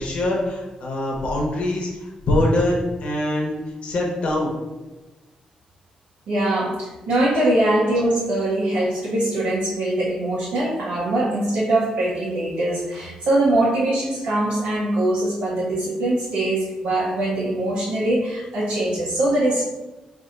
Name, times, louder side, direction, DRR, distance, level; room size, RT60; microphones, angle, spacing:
voice 1, 0.0-4.5, left 1 dB, 55° left, -1 dB, 1.0 m, -23 dB
voice 2, 6.3-19.6, right 1 dB, 70° right, -6 dB, 0.8 m, -22 dB
5.5 x 2.6 x 2.6 m, 1.2 s
cardioid pair, 130°, 2 cm